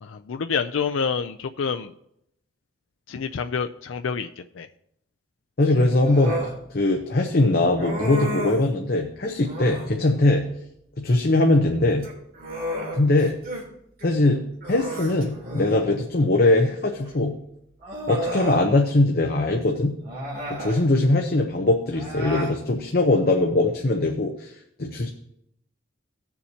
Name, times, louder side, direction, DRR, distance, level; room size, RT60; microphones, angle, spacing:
voice 1, 0.0-1.9 3.1-4.7, left 6 dB, 85° left, 8 dB, 0.4 m, -28 dB
voice 2, 5.6-6.4 6.7-10.4 11.0-12.0 12.9-13.4 14.0-14.4 14.7-17.3 18.1-19.9 20.6-24.5 24.8-25.1, left 2 dB, 50° left, 3 dB, 0.8 m, -21 dB
Human voice, 6.0-6.6 7.8-8.7 9.4-9.9 11.9-13.7 14.0-14.1 14.6-15.8 17.0-17.1 17.8-18.6 20.0-20.8 21.9-22.6, equal, 50° right, 3.3 m, -32 dB
17.5 x 7.1 x 2.8 m, 0.76 s
head